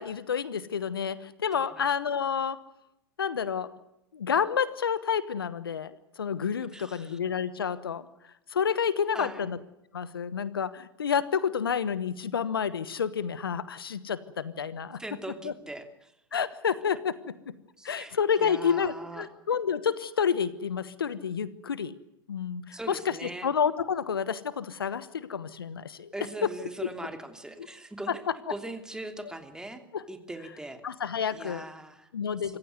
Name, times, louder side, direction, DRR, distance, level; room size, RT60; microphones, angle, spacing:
voice 1, 0.0-2.6 3.2-3.7 4.1-8.1 8.5-9.6 9.9-15.0 15.4-15.5 16.3-17.5 17.8-21.9 22.3-23.2 23.4-26.1 26.4-26.5 29.9-30.0 30.8-31.6 32.1-32.6, left 7 dB, 80° left, 16 dB, 1.2 m, -29 dB
voice 2, 1.5-1.8 6.7-7.2 9.1-9.5 15.0-16.1 17.8-19.3 22.7-23.5 26.1-28.2 28.5-29.8 30.1-30.8 31.3-32.1 32.4-32.6, right 2 dB, 5° right, 7 dB, 2.9 m, -40 dB
26.0 x 15.0 x 9.4 m, 0.83 s
hypercardioid pair, 90°, 12 cm